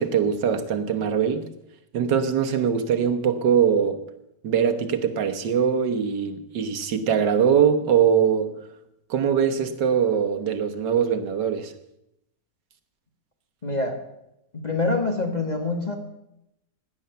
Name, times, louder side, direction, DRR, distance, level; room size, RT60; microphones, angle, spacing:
voice 1, 0.0-1.5 1.9-4.0 4.4-8.5 9.1-11.7, right 7 dB, 85° right, 1.8 m, -22 dB
voice 2, 13.6-14.0 14.5-16.0, left 3 dB, 25° left, 1.6 m, -25 dB
17.0 x 10.5 x 6.9 m
omnidirectional pair, 1.8 m